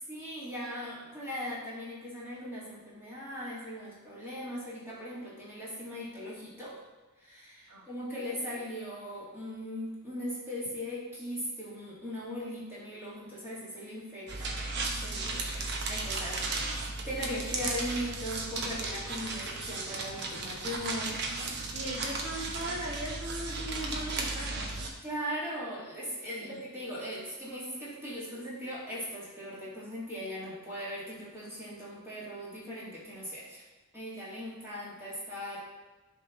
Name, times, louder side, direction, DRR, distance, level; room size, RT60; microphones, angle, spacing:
voice 1, 0.1-6.8 7.2-14.6 15.0-21.5 25.0-33.6 33.9-35.6, equal, 10° right, -8 dB, 1.9 m, -39 dB
sound 1, 14.3-24.9, right 3 dB, 55° right, 0.8 m, -35 dB
voice 2, 21.7-24.9 26.3-26.6, right 1 dB, 70° right, -7 dB, 1.2 m, -39 dB
10.5 x 3.6 x 3.1 m, 1.2 s
head